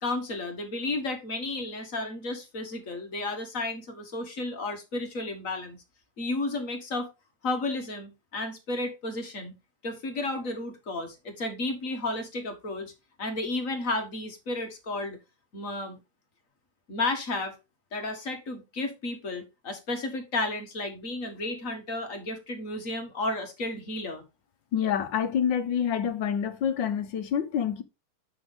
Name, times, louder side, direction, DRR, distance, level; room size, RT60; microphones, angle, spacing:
voice 1, 0.0-5.8 6.2-7.1 7.4-9.5 9.8-12.9 13.2-15.2 15.5-16.0 16.9-17.6 17.9-24.2, left 2 dB, 45° left, 1.9 m, -32 dB
voice 2, 24.7-27.8, left 8 dB, 85° left, 1.7 m, -27 dB
8.3 x 6.1 x 3.6 m
omnidirectional pair, 2.0 m